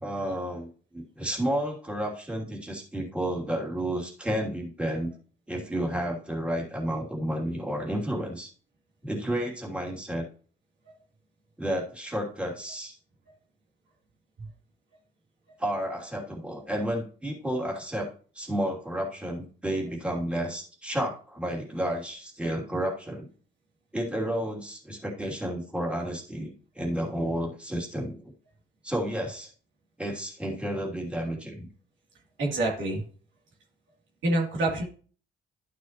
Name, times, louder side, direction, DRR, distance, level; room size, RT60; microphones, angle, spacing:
voice 1, 0.0-5.1 5.5-8.5 9.0-10.3 11.6-12.9 15.6-23.3 23.9-28.3 28.8-29.5 30.0-31.7, right 1 dB, 5° right, -3 dB, 2.9 m, -31 dB
voice 2, 32.4-33.0 34.2-34.8, right 2 dB, 70° right, -2 dB, 3.0 m, -26 dB
12.0 x 6.3 x 3.0 m, 0.40 s
cardioid pair, 90°, 20 cm